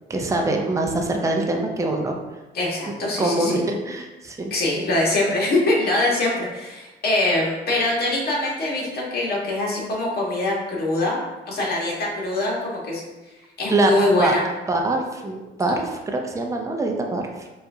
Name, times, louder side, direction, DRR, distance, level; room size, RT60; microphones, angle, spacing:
voice 1, 0.1-2.2 3.2-4.5 13.7-13.9 14.2-14.4 14.7-17.5, right 2 dB, 15° right, 2 dB, 0.5 m, -24 dB
voice 2, 2.5-3.6 4.5-13.0 13.6-14.4, left 2 dB, 50° left, -4 dB, 1.3 m, -23 dB
4.7 x 2.5 x 2.7 m, 1.1 s
cardioid pair, 90°, 20 cm